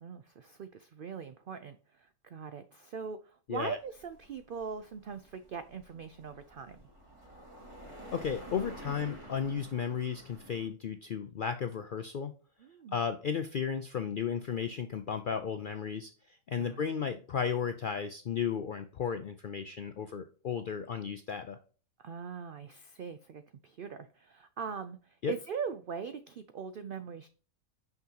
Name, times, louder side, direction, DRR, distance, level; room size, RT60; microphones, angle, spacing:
voice 1, 0.0-6.8 12.6-13.0 16.6-16.8 22.0-27.3, right 6 dB, 85° right, 10 dB, 0.4 m, -41 dB
sound 1, 3.6-10.7, right 1 dB, 20° right, 2.3 m, -50 dB
voice 2, 8.1-12.3 12.9-21.6 25.2-25.3, left 7 dB, 70° left, 8 dB, 0.4 m, -34 dB
5.9 x 5.8 x 2.8 m, 0.38 s
omnidirectional pair, 1.5 m